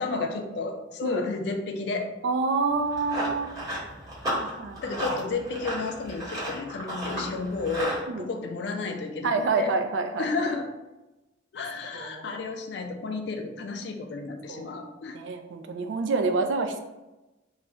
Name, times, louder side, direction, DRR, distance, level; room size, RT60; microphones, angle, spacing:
voice 1, 0.0-2.1 4.0-9.7 10.2-10.7 11.5-15.2, left 3 dB, 60° left, 4 dB, 0.4 m, -32 dB
voice 2, 2.2-3.7 4.3-5.0 7.2-7.3 8.1-8.2 9.2-10.5 11.9-12.4 14.5-14.7 15.1-16.8, right 4 dB, 75° right, 6 dB, 0.3 m, -28 dB
Run, 2.7-8.0, equal, 20° right, 0.8 m, -34 dB
2.3 x 2.1 x 3.7 m, 1.0 s
head